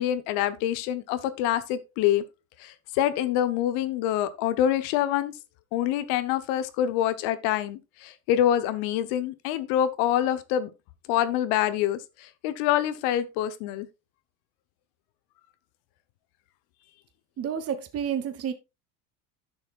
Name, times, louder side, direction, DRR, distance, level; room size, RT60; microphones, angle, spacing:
voice 1, 0.0-2.2 2.6-5.3 5.7-10.7 11.1-13.9, left 11 dB, 60° left, 0.9 m, -26 dB
voice 2, 17.4-18.5, right 8 dB, 30° right, 1.0 m, -30 dB
11.0 x 6.4 x 2.3 m
hypercardioid pair, 80°, 45 cm